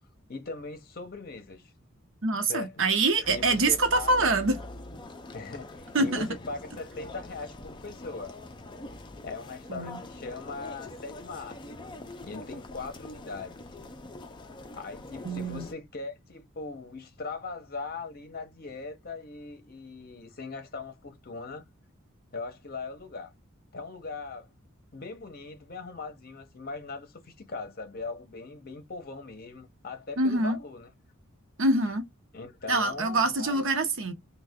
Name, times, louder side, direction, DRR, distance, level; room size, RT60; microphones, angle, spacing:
voice 1, 0.3-1.7 2.4-4.4 5.3-8.4 9.2-13.6 14.7-21.6 22.3-23.3 23.7-24.5 24.9-30.9 32.3-33.7, left 4 dB, 45° left, 0.8 m, -40 dB
voice 2, 2.2-4.6 5.9-6.3 9.7-10.0 15.2-15.7 30.2-30.6 31.6-32.0 32.7-34.1, right 2 dB, 65° right, 0.7 m, -25 dB
sound 1, 3.2-15.7, left 2 dB, 20° left, 0.4 m, -44 dB
3.2 x 2.2 x 3.5 m
head